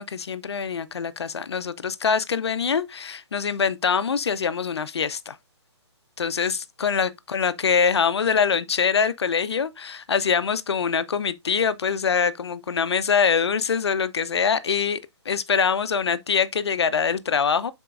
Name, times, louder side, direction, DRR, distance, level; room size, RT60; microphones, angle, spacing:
voice 1, 0.0-5.4 6.2-17.7, left 6 dB, 65° left, 0.8 m, -24 dB
11.0 x 4.5 x 2.5 m
figure-of-eight pair, 140°, 15 cm